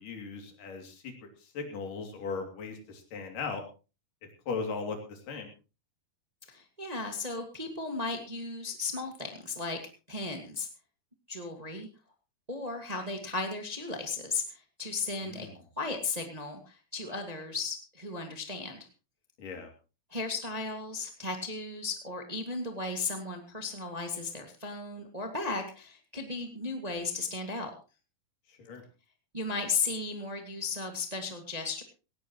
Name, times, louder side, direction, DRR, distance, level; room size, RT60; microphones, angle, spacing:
voice 1, 0.0-3.6 4.5-5.5 15.2-15.6 19.4-19.7 28.5-28.8, left 4 dB, 60° left, 4 dB, 4.2 m, -38 dB
voice 2, 6.5-9.8 10.1-10.7 11.3-11.9 12.5-15.5 15.8-18.9 20.1-27.7 29.3-31.8, left 3 dB, 25° right, 4 dB, 0.9 m, -35 dB
18.5 x 16.5 x 3.1 m, 0.32 s
omnidirectional pair, 4.3 m